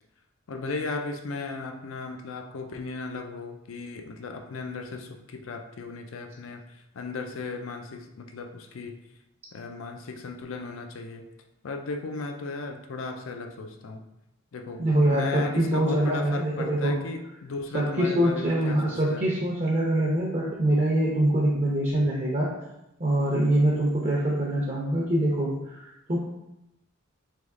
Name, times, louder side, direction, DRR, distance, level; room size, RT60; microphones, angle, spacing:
voice 1, 0.5-9.0 9.5-11.2 11.6-14.0 14.5-19.3, left 3 dB, 70° left, 5 dB, 0.4 m, -36 dB
voice 2, 14.8-17.0 17.7-22.5 23.0-26.2, right 1 dB, 35° right, -5 dB, 0.7 m, -24 dB
3.5 x 3.0 x 3.6 m, 0.90 s
head